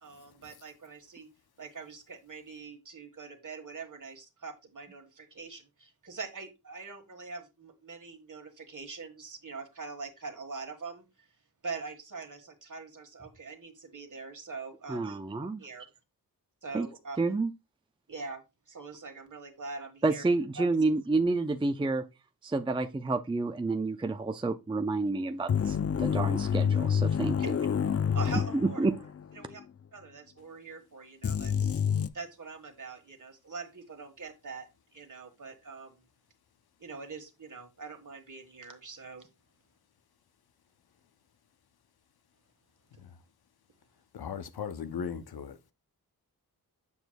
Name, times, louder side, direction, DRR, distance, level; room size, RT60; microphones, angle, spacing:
voice 1, 0.0-1.3 1.6-11.3 11.6-15.0 15.6-15.8 16.6-17.4 18.1-20.2 20.6-20.7 27.4-27.5 28.1-28.9 29.3-29.6 29.9-31.8 32.1-34.7 34.9-36.1 36.8-39.3, right 4 dB, 55° right, 1.5 m, -43 dB
voice 2, 14.9-15.6 16.7-16.9 17.2-17.5 20.0-22.0 22.4-27.3 28.8-29.0, right 3 dB, 15° right, 0.4 m, -29 dB
sound 1, 25.5-29.2 29.5-29.6 31.2-32.1, left 7 dB, 40° left, 0.5 m, -28 dB
voice 3, 44.1-45.6, left 7 dB, 80° left, 0.7 m, -38 dB
7.1 x 6.0 x 2.2 m
cardioid pair, 45°, 37 cm